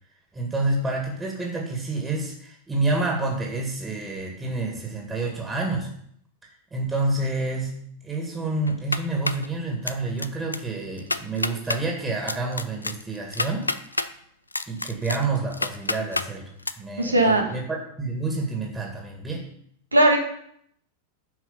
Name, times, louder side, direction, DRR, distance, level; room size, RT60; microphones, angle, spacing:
voice 1, 0.3-5.9 6.7-7.7 8.0-13.7 14.7-16.5 16.8-19.5, right 3 dB, 15° right, -1 dB, 2.2 m, -28 dB
sound 1, 8.7-9.5 9.9-10.3 10.5-10.6 11.0-11.8 12.3-14.1 14.5-16.3 16.6-16.7, left 3 dB, 80° left, 0.4 m, -28 dB
voice 2, 17.0-17.5 19.9-20.2, right 1 dB, 80° right, 3 dB, 1.8 m, -18 dB
10.5 x 6.0 x 5.4 m, 0.69 s
figure-of-eight pair, 90°, 0 cm